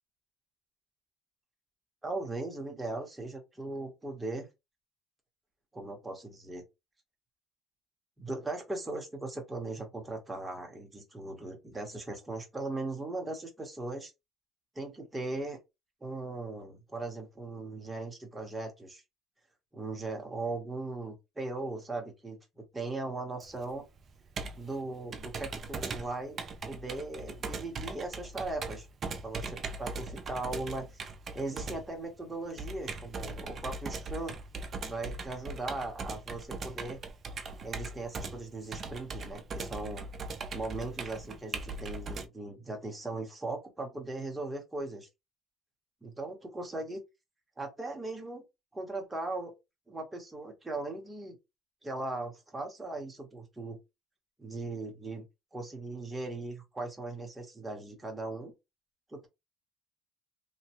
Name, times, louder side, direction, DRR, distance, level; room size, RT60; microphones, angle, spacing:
voice 1, 2.0-4.5 5.7-6.6 8.2-14.1 14.7-15.6 16.0-19.0 19.7-23.8 24.5-28.9 29.2-31.0 31.3-34.3 34.8-37.0 37.6-40.0 40.5-45.1 46.0-47.0 47.6-48.4 48.7-49.5 49.9-51.4 51.8-53.8 54.4-55.2 55.5-58.5 59.1-59.3, right 2 dB, 10° right, 0.9 m, -38 dB
Computer keyboard, 23.4-42.3, right 3 dB, 35° right, 0.5 m, -40 dB
3.2 x 2.1 x 2.9 m
cardioid pair, 145°, 0 cm